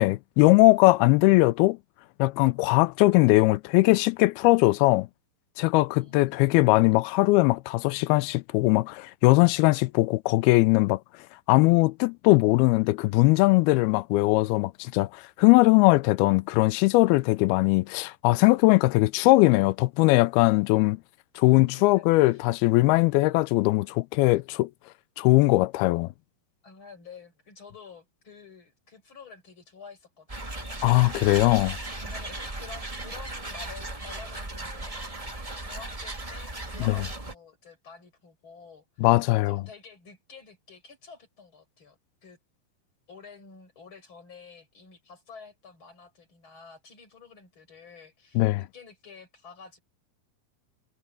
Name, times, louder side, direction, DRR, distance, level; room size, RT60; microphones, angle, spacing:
voice 1, 0.0-1.8 2.2-5.1 5.6-11.0 11.5-21.0 21.4-24.7 25.2-26.1 30.8-31.8 36.8-37.0 39.0-39.6 48.4-48.6, left 21 dB, 90° left, 2.5 m, -20 dB
voice 2, 5.7-6.4 21.5-22.5 26.6-30.8 32.0-39.1 39.5-42.4 43.1-49.8, left 5 dB, 30° left, 6.2 m, -49 dB
sound 1, 30.3-37.3, right 2 dB, 20° right, 1.0 m, -36 dB
omnidirectional pair, 4.3 m